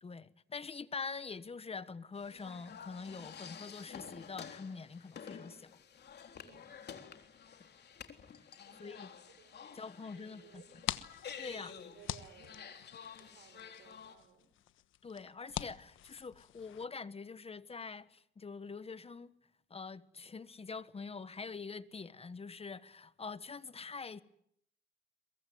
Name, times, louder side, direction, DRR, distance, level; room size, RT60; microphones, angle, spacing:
voice 1, 0.0-5.7 8.7-9.1 9.7-10.6 11.4-11.7 15.0-19.3 19.7-24.2, left 4 dB, 30° left, 1.3 m, -45 dB
sound 1, 2.2-14.1, left 7 dB, 55° left, 3.6 m, -51 dB
voice 2, 6.3-6.9 8.7-9.0 9.2-10.8 11.5-12.8 13.2-14.5, right 9 dB, 80° right, 6.8 m, -60 dB
sound 2, 10.5-16.8, left 13 dB, 85° left, 1.3 m, -45 dB
22.5 x 22.5 x 9.3 m
cardioid pair, 90°, 20 cm